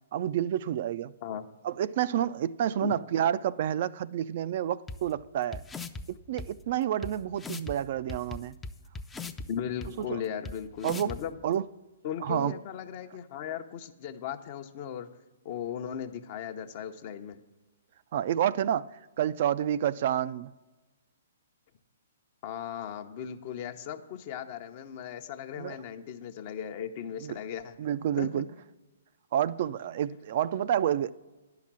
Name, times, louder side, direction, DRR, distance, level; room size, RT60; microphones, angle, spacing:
voice 1, 0.1-1.1 1.6-5.6 6.1-8.6 10.0-10.2 10.8-11.2 11.4-11.6 12.2-12.5 18.1-18.9 19.2-20.5 25.6-25.8 27.2-27.4 27.8-28.5 29.3-31.1, right 10 dB, 50° right, 0.3 m, -29 dB
sound 1, 4.9-5.0 5.5-6.0 6.4-6.5 7.0-7.1 7.4-7.7 8.1-9.5 9.8-9.9 10.4-10.5 10.8-11.2, left 3 dB, 10° left, 0.4 m, -38 dB
voice 2, 9.5-11.4 12.0-15.1 15.4-17.4 22.4-27.8 28.2-28.4, left 9 dB, 45° left, 0.7 m, -37 dB
10.5 x 5.8 x 7.4 m
hypercardioid pair, 130°, 0 cm